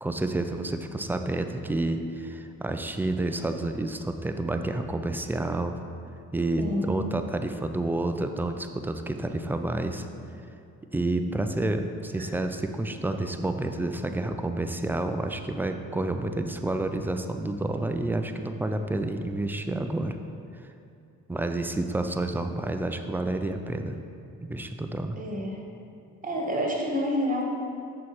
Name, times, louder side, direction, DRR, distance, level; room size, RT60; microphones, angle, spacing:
voice 1, 0.0-5.8 6.3-10.1 10.9-20.2 21.3-24.0 24.4-25.2, right 2 dB, 5° right, 7 dB, 0.3 m, -29 dB
voice 2, 6.6-7.0 12.2-12.3 25.2-25.6 26.2-27.5, equal, 20° right, -1 dB, 1.5 m, -28 dB
6.3 x 4.2 x 4.4 m, 2.6 s
supercardioid pair, 60°, 39 cm